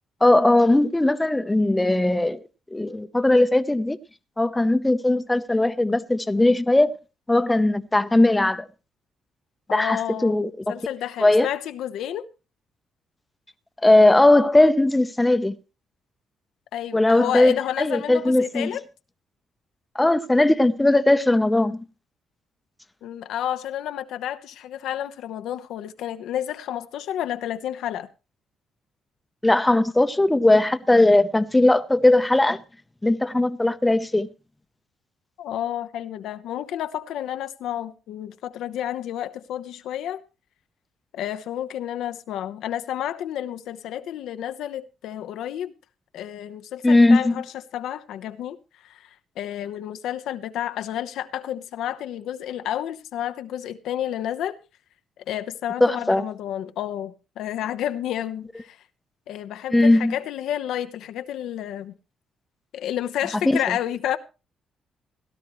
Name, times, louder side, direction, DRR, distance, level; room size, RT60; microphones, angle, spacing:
voice 1, 0.2-2.4 2.7-4.0 4.4-7.0 7.3-8.7 9.7-10.7 11.2-11.5 13.8-15.5 16.9-18.7 19.9-21.8 29.4-32.6 33.0-34.3 46.8-47.4 55.8-56.2 59.7-60.1 63.5-63.6, left 2 dB, 10° left, 0.8 m, -19 dB
voice 2, 9.7-10.4 10.7-12.3 16.7-18.8 23.0-28.1 35.4-40.2 41.1-45.7 46.1-47.5 47.7-54.6 55.3-58.8 59.3-61.9 62.7-64.2, left 11 dB, 80° left, 0.9 m, -30 dB
17.0 x 12.0 x 3.1 m
cardioid pair, 90°, 0 cm